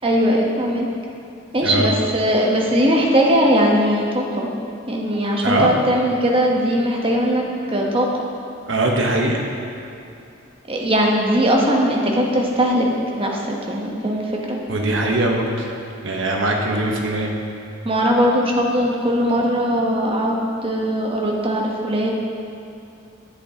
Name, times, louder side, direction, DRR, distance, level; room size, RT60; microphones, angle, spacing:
voice 1, 0.0-0.9 1.5-4.5 4.9-8.1 10.7-12.9 13.2-14.6 17.8-22.1, equal, 25° right, -1 dB, 1.0 m, -19 dB
voice 2, 5.4-5.7 8.7-9.4 14.7-15.7 16.0-17.3, right 2 dB, 70° right, 0 dB, 1.0 m, -21 dB
10.0 x 7.9 x 2.9 m, 2.7 s
head